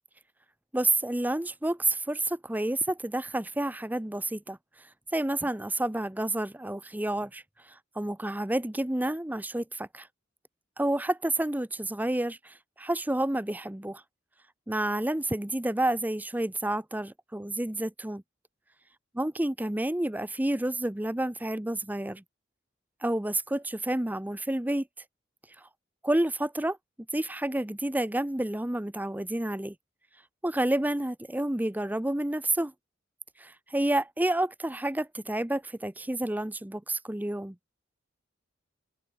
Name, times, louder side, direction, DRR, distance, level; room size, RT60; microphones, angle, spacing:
voice 1, 0.7-4.6 5.1-10.1 10.8-14.0 14.7-18.2 19.1-22.2 23.0-24.9 25.6-25.7 26.0-26.8 27.1-29.7 30.4-32.7 33.4-37.6, right 1 dB, 10° right, 0.7 m, -29 dB
open air
head